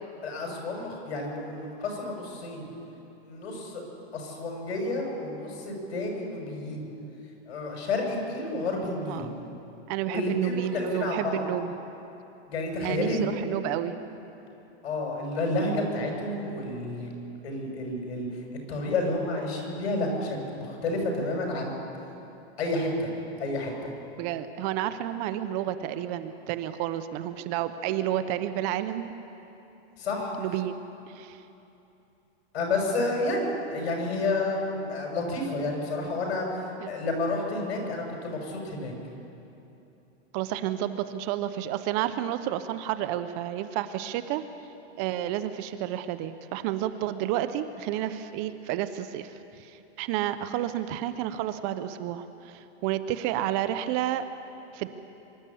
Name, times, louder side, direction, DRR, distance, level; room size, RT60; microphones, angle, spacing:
voice 1, 0.2-2.7 3.2-3.8 4.1-6.9 7.5-9.3 10.1-11.4 12.5-13.2 14.8-17.1 17.4-18.3 18.7-21.8 22.6-23.1 23.4-23.9 30.0-30.3 32.5-36.5 36.9-38.9, left 2 dB, 75° left, 1 dB, 6.6 m, -30 dB
voice 2, 9.9-11.7 12.8-14.0 24.2-29.1 30.4-30.8 31.1-31.4 36.8-37.0 40.3-44.4 45.0-54.2 54.7-54.9, right 12 dB, 35° right, 11 dB, 0.8 m, -30 dB
24.5 x 12.5 x 8.6 m, 2.9 s
supercardioid pair, 150°, 33 cm